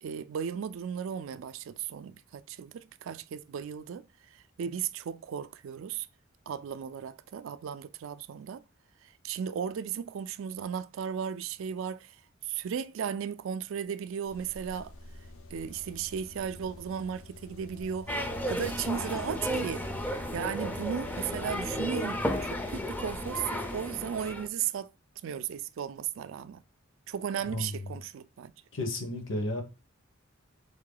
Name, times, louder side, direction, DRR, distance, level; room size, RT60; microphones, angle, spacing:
voice 1, 0.0-4.1 4.6-6.1 6.5-8.6 9.2-12.2 12.5-14.9 15.5-18.2 18.5-19.9 20.3-24.9 25.2-26.6 27.1-28.5, right 8 dB, 70° right, 0.3 m, -35 dB
sound 1, 14.2-23.3, left 2 dB, 90° left, 0.7 m, -47 dB
sound 2, 18.1-24.5, equal, 10° left, 0.4 m, -33 dB
voice 2, 27.4-28.0 28.7-29.6, left 1 dB, 65° left, 1.0 m, -33 dB
3.6 x 3.5 x 3.8 m
head